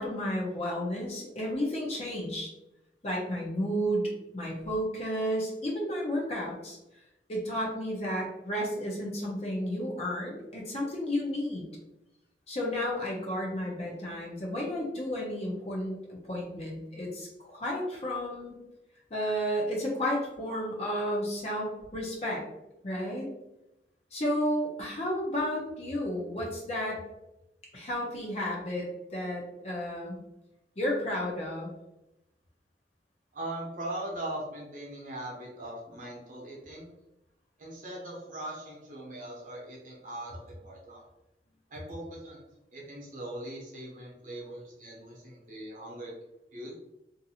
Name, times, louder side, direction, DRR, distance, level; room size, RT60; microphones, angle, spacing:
voice 1, 0.0-2.5 3.0-6.8 7.3-11.6 12.5-16.0 16.3-18.6 19.1-22.4 22.8-23.3 24.1-27.0 27.7-30.2 30.8-31.7, equal, 35° left, -3 dB, 0.7 m, -32 dB
voice 2, 33.3-36.9 37.6-41.0 41.7-42.4 42.7-46.1 46.5-46.7, right 1 dB, 45° right, -3 dB, 0.8 m, -40 dB
2.7 x 2.5 x 2.7 m, 0.91 s
head